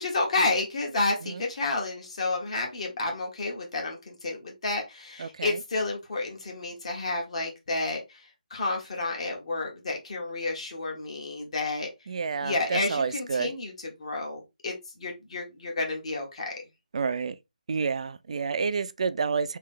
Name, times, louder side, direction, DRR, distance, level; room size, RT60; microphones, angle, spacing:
voice 1, 0.0-8.2 8.5-11.9 12.4-13.7 14.0-16.5, left 3 dB, 45° left, 1.3 m, -30 dB
voice 2, 5.2-5.6 12.1-13.5 16.9-17.4 17.7-19.6, right 5 dB, 50° right, 0.4 m, -29 dB
3.3 x 2.7 x 3.7 m
hypercardioid pair, 170°, 5 cm